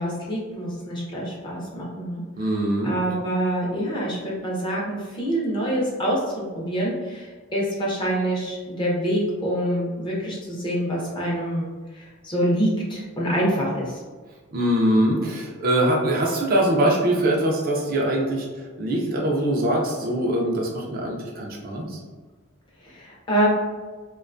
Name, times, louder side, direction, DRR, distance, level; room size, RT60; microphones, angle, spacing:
voice 1, 0.0-2.5 2.8-11.7 11.9-14.0 22.8-23.5, right 1 dB, 20° left, -4 dB, 0.5 m, -26 dB
voice 2, 2.4-2.9 14.5-18.5 18.8-22.0, right 1 dB, 45° right, -1 dB, 0.4 m, -22 dB
2.5 x 2.2 x 2.4 m, 1.4 s
head